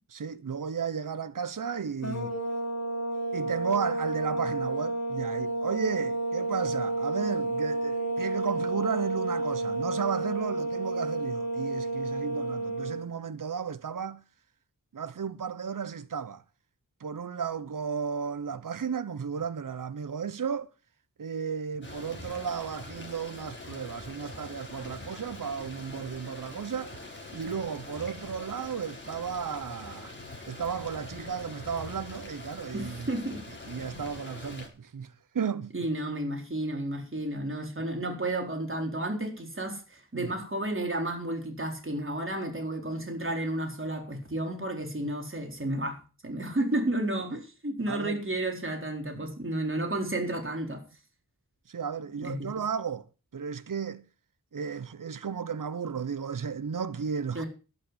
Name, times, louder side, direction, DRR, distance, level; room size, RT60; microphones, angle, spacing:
voice 1, 0.1-2.4 3.3-14.2 14.9-16.4 17.0-20.7 21.2-27.0 27.3-30.1 30.5-33.1 33.7-35.9 40.1-40.3 47.9-48.2 49.1-49.3 51.7-53.1 53.3-54.0 54.5-57.4, right 6 dB, 60° right, 0.9 m, -34 dB
sound 1, 2.0-13.1, right 2 dB, 50° left, 2.8 m, -31 dB
sound 2, 21.8-34.7, left 2 dB, 30° left, 4.8 m, -44 dB
voice 2, 32.7-33.4 35.7-50.8 52.2-52.5 57.3-57.5, right 1 dB, 35° right, 4.2 m, -32 dB
11.5 x 8.3 x 8.2 m
wide cardioid pair, 65°, 35 cm